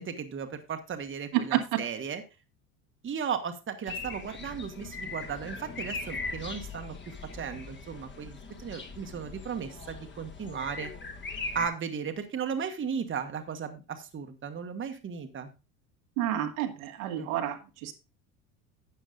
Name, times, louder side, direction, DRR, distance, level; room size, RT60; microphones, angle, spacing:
voice 1, 0.0-2.2 3.0-10.9 11.5-15.5 17.2-17.3, right 7 dB, 25° right, 6 dB, 1.5 m, -36 dB
voice 2, 1.3-1.8 16.2-17.9, right 12 dB, 65° right, 4 dB, 1.8 m, -29 dB
sound 1, 3.9-11.7, left 3 dB, 25° left, 1.8 m, -40 dB
12.5 x 8.8 x 2.5 m, 0.30 s
hypercardioid pair, 70°, 44 cm